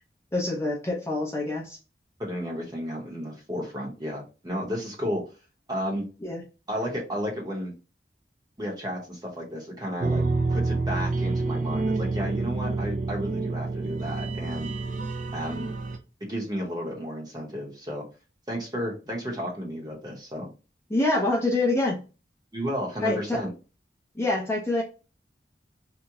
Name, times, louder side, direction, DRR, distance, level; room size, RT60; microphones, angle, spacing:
voice 1, 0.3-1.8 6.2-6.4 20.9-22.0 23.0-23.4 24.2-24.8, left 2 dB, 15° left, -2 dB, 0.6 m, -26 dB
voice 2, 2.2-5.2 5.7-6.1 6.7-7.7 8.6-10.2 10.5-14.7 15.3-15.7 16.2-18.0 18.5-20.5 22.5-23.5, equal, 20° right, -1 dB, 0.8 m, -32 dB
sound 1, 10.0-16.0, right 3 dB, 45° right, 0.4 m, -28 dB
2.9 x 2.1 x 3.5 m, 0.33 s
head